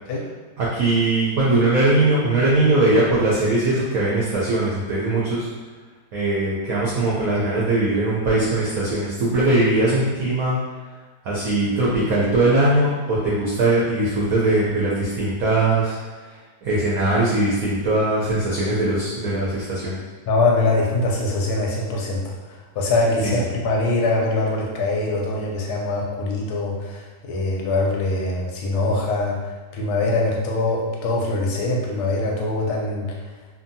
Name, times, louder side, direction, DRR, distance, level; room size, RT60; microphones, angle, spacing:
voice 1, 0.6-5.5 6.1-10.6 11.2-16.3 16.6-20.0 23.2-23.3, right 2 dB, 70° right, -6 dB, 0.9 m, -20 dB
voice 2, 20.3-33.2, left 2 dB, 70° left, -1 dB, 1.0 m, -23 dB
2.7 x 2.6 x 2.6 m, 1.3 s
omnidirectional pair, 1.9 m